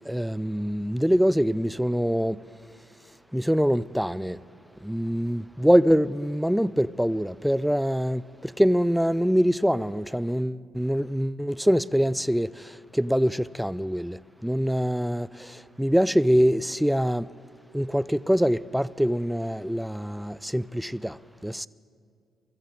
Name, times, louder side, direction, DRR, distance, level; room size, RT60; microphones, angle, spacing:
voice 1, 0.0-2.4 3.3-4.4 4.8-17.3 17.7-21.7, equal, ahead, 0.4 m, -24 dB
24.0 x 14.0 x 3.9 m
cardioid pair, 90°, 0 cm